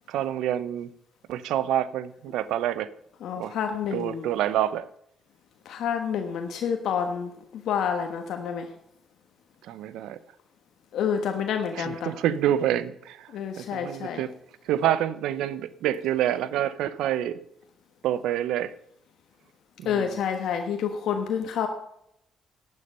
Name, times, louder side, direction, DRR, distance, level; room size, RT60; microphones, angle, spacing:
voice 1, 0.1-0.9 1.3-2.9 3.4-3.5 3.9-4.9 9.6-10.2 11.8-14.3 14.6-17.4 18.0-18.7 19.8-20.1, right 11 dB, 90° right, 17 dB, 0.6 m, -27 dB
voice 2, 3.2-4.3 5.6-8.7 10.9-12.1 13.3-14.2 19.8-21.7, left 7 dB, 80° left, 5 dB, 1.2 m, -28 dB
11.0 x 9.7 x 5.5 m, 0.74 s
cardioid pair, 90°, 0 cm